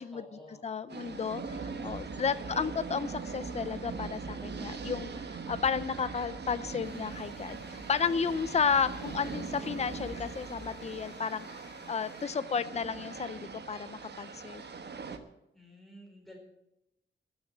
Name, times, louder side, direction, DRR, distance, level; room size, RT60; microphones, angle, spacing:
voice 1, 0.1-0.6 2.3-2.7 8.6-9.3 15.5-16.4, left 1 dB, ahead, -1 dB, 4.1 m, -52 dB
voice 2, 0.6-11.6 11.9-14.6, left 6 dB, 30° left, 14 dB, 0.5 m, -33 dB
sound 1, 0.9-15.2, right 4 dB, 55° right, 1.1 m, -41 dB
sound 2, 6.8-12.3, left 5 dB, 55° left, 1.4 m, -56 dB
12.5 x 7.2 x 9.7 m, 0.86 s
wide cardioid pair, 165°, 21 cm